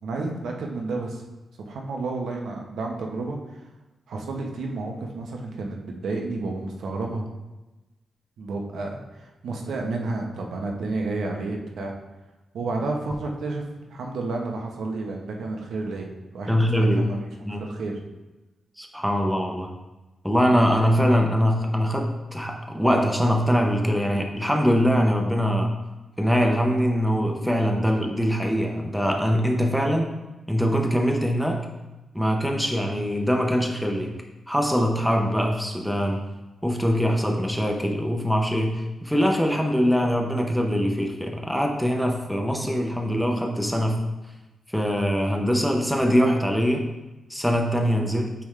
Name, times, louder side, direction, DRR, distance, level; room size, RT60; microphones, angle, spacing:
voice 1, 0.0-1.2 1.6-3.6 4.1-7.3 8.4-11.9 12.5-17.3 17.6-18.0 47.9-48.1, right 3 dB, 80° right, 1 dB, 1.0 m, -31 dB
voice 2, 16.5-17.0 17.4-17.6 18.8-19.7 20.2-25.7 26.2-30.1 30.5-31.6 32.1-34.1 34.5-36.2 36.6-44.0 44.7-46.8 47.3-48.3, equal, ahead, 1 dB, 0.7 m, -23 dB
8.6 x 3.6 x 3.2 m, 1.1 s
wide cardioid pair, 140°, 0 cm